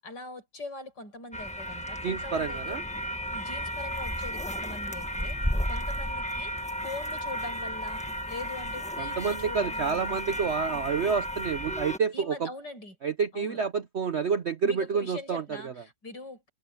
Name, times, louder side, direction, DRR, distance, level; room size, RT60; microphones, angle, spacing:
voice 1, 0.0-2.8 3.3-5.4 5.7-6.5 6.8-10.2 12.1-12.9 13.3-13.6 14.6-16.5, left 2 dB, 70° left, 7.8 m, -42 dB
sound 1, 1.3-12.0, equal, 5° left, 1.2 m, -33 dB
voice 2, 2.0-2.8 9.0-12.5 13.0-15.7, right 6 dB, 55° right, 0.7 m, -29 dB
omnidirectional pair, 2.0 m